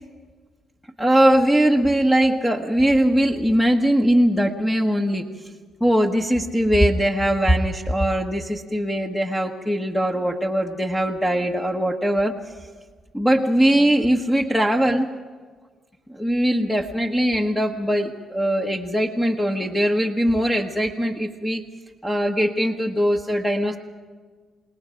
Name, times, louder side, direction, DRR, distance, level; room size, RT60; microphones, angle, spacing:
voice 1, 1.0-5.3 5.8-12.3 13.1-15.1 16.1-21.6 22.0-23.8, equal, 5° left, 1 dB, 1.3 m, -20 dB
29.0 x 18.5 x 5.1 m, 1.5 s
cardioid pair, 90°, 0 cm